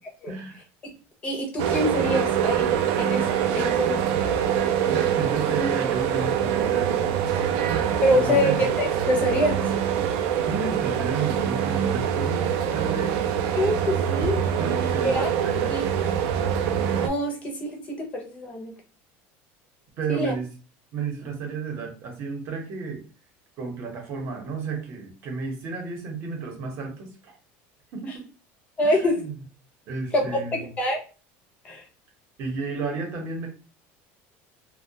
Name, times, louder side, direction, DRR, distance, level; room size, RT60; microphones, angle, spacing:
voice 1, 0.3-0.6 4.9-7.7 8.1-8.7 10.4-13.2 14.6-15.8 20.0-20.5 20.9-23.0 23.6-27.3 27.9-28.3 28.8-29.4 29.9-30.7 32.4-33.5, right 4 dB, 45° right, 2 dB, 0.8 m, -32 dB
voice 2, 1.2-2.7 3.0-4.0 8.0-9.6 13.6-14.5 15.0-15.3 15.7-15.8 16.9-18.7 20.1-20.3 28.8-29.2 30.1-30.2 30.5-31.0 31.6-31.8, left 1 dB, 20° left, 1 dB, 0.5 m, -25 dB
sound 1, 1.6-17.1, right 9 dB, 70° right, 0.4 m, -24 dB
2.2 x 2.1 x 2.7 m, 0.35 s
cardioid pair, 160°, 6 cm